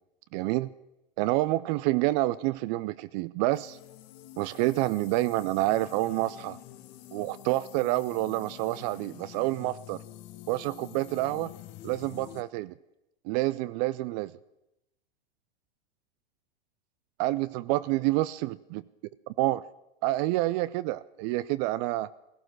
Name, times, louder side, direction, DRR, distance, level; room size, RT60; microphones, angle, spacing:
voice 1, 0.3-0.7 1.2-3.8 4.4-6.6 7.1-10.0 10.5-11.5 11.8-12.8 13.2-14.3 17.2-18.8 19.4-19.6 20.0-22.1, right 17 dB, 45° right, 16 dB, 0.5 m, -28 dB
sound 1, 3.5-12.4, left 15 dB, 50° left, 1.3 m, -47 dB
16.0 x 14.0 x 6.3 m, 0.90 s
hypercardioid pair, 105°, 30 cm